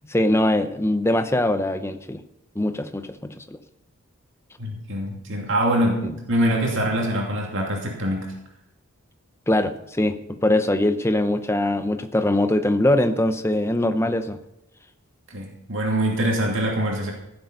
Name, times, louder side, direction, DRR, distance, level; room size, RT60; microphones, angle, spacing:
voice 1, 0.1-2.2 2.6-3.6 6.0-6.1 9.5-14.4, left 1 dB, 10° left, 9 dB, 0.7 m, -22 dB
voice 2, 4.6-8.3 15.3-17.1, right 1 dB, 60° right, -1 dB, 2.7 m, -24 dB
15.5 x 7.9 x 5.5 m, 0.87 s
head